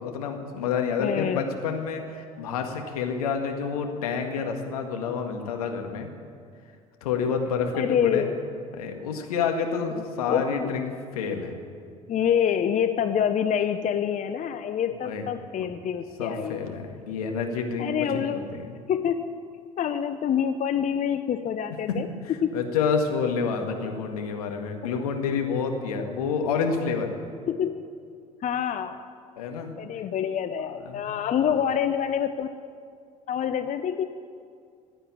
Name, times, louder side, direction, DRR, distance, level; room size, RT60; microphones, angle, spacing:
voice 1, 0.0-6.1 7.0-8.3 8.7-11.6 15.0-15.3 16.2-18.7 21.9-22.0 22.5-27.1 29.4-29.7 30.9-31.5, left 5 dB, 75° left, 4 dB, 1.9 m, -28 dB
voice 2, 1.0-1.4 7.7-8.4 10.0-10.7 12.1-16.6 17.8-18.5 18.9-19.4 19.8-22.1 22.4-22.5 24.8-25.0 27.5-27.8 28.4-29.0 29.8-32.5 33.3-34.1, left 8 dB, 40° left, 10 dB, 0.8 m, -26 dB
15.5 x 10.0 x 8.6 m, 2.2 s
figure-of-eight pair, 60°, 19 cm